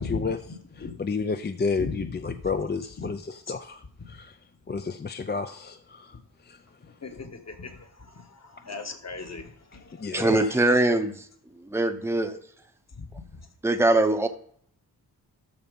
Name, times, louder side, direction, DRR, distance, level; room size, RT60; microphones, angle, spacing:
voice 1, 0.0-4.4 4.7-6.2 6.4-6.6 10.0-10.6, left 4 dB, 25° left, 8 dB, 0.4 m, -31 dB
voice 2, 1.8-2.3 3.0-3.1 7.0-7.7 8.6-9.4 13.0-13.1, left 4 dB, 40° left, 5 dB, 1.4 m, -35 dB
voice 3, 10.1-11.3 11.6-12.4 13.6-14.3, right 2 dB, 5° right, 7 dB, 0.7 m, -22 dB
13.0 x 4.3 x 5.3 m, 0.63 s
wide cardioid pair, 125°, 39 cm